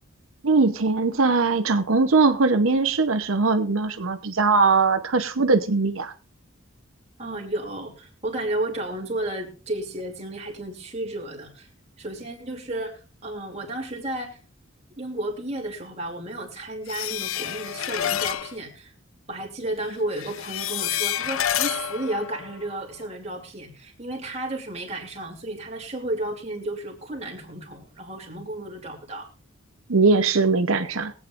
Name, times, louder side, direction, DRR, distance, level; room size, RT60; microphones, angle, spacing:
voice 1, 0.4-6.1 29.9-31.1, right 3 dB, 75° right, 8 dB, 0.9 m, -20 dB
voice 2, 7.2-11.7 12.0-14.4 15.0-18.9 19.3-29.3, right 1 dB, 30° right, 1 dB, 2.9 m, -32 dB
sound 1, 16.9-18.6 20.1-23.0, left 11 dB, 75° left, 0.5 m, -29 dB
22.5 x 8.6 x 2.5 m, 0.36 s
head